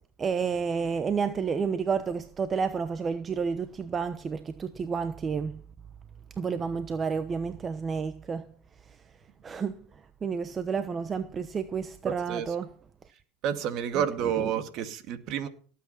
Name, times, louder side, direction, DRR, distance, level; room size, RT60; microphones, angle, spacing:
voice 1, 0.2-5.5 6.4-8.5 9.4-9.8 10.2-12.7 14.2-14.5, right 5 dB, 25° right, 1.0 m, -30 dB
voice 2, 12.0-12.5 13.4-15.5, right 9 dB, 50° right, 2.2 m, -30 dB
18.0 x 8.6 x 5.8 m
hypercardioid pair, 105°, 0 cm